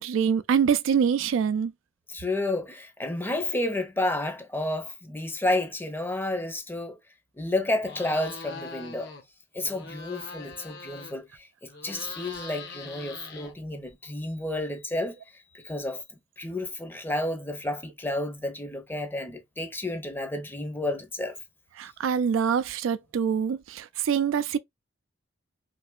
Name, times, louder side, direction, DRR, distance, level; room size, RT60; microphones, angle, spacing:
voice 1, 0.0-1.7 21.8-24.6, right 7 dB, 80° right, 0.3 m, -25 dB
voice 2, 2.1-7.0 7.4-9.1 9.5-15.2 15.5-16.0 16.4-21.3, left 1 dB, 10° left, 0.6 m, -31 dB
sound 1, 7.8-9.2 9.5-11.4 11.7-13.9, left 4 dB, 60° left, 0.9 m, -42 dB
3.2 x 2.8 x 2.3 m
head